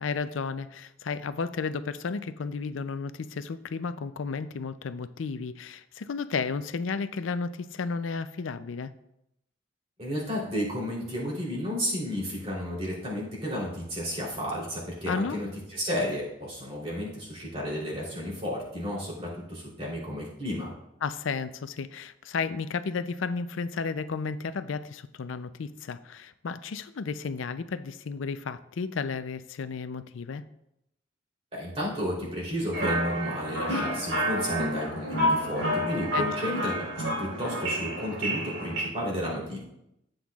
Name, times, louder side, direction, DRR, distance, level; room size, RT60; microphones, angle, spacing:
voice 1, 0.0-8.9 15.1-15.4 21.0-30.4 36.1-36.5, left 5 dB, 85° left, 12 dB, 0.5 m, -33 dB
voice 2, 10.0-20.7 31.5-36.9 37.2-39.6, equal, 30° right, -5 dB, 3.3 m, -32 dB
sound 1, 32.7-38.8, equal, 70° right, 3.8 m, -29 dB
14.0 x 7.9 x 2.4 m, 0.83 s
head